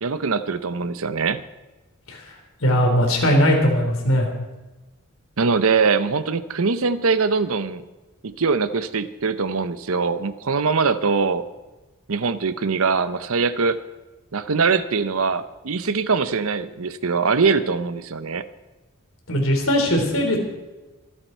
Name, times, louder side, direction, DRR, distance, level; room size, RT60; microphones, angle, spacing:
voice 1, 0.0-1.4 5.4-7.8 8.2-11.4 12.1-13.8 14.3-18.4, right 4 dB, 75° right, 13 dB, 0.8 m, -22 dB
voice 2, 2.6-4.3 19.3-20.4, equal, 70° left, 2 dB, 3.5 m, -19 dB
25.5 x 8.8 x 4.5 m, 1.1 s
head